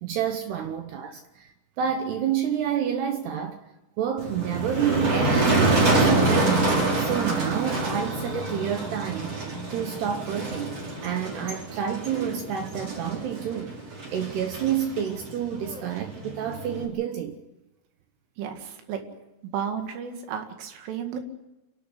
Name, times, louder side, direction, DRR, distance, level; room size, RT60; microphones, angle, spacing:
voice 1, 0.0-1.5 1.8-3.7 4.0-9.4 9.7-10.8 11.0-13.7 14.1-17.4, right 9 dB, 70° right, 2.8 m, -29 dB
Motor vehicle (road), 4.2-16.8, right 2 dB, 35° right, 4.8 m, -26 dB
voice 2, 18.4-19.0 19.5-21.2, right 8 dB, 85° right, 4.6 m, -33 dB
28.0 x 12.0 x 9.8 m
omnidirectional pair, 5.5 m